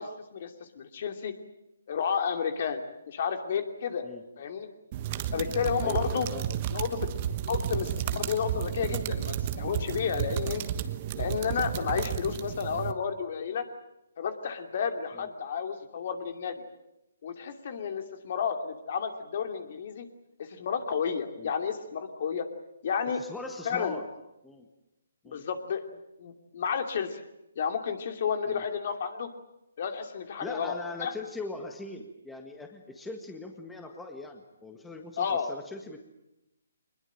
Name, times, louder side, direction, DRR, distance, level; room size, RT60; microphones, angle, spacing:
voice 1, 0.0-1.3 1.9-4.1 4.4-4.7 5.3-6.3 6.7-7.1 7.5-10.6 11.1-13.7 14.2-16.6 17.2-20.1 20.4-22.5 22.8-23.2 23.6-24.0 25.3-27.2 27.6-29.3 29.8-31.1 35.2-35.5, left 6 dB, 50° left, 7 dB, 2.7 m, -31 dB
sound 1, 4.9-12.9, right 10 dB, 35° right, 1.3 m, -32 dB
voice 2, 5.4-6.6 7.6-7.8 15.1-15.3 21.4-21.5 23.2-24.1 24.4-24.7 25.2-25.4 28.5-28.6 30.4-36.0, left 2 dB, 5° left, 4 dB, 1.7 m, -41 dB
23.0 x 21.0 x 9.0 m, 0.89 s
hypercardioid pair, 150°, 0 cm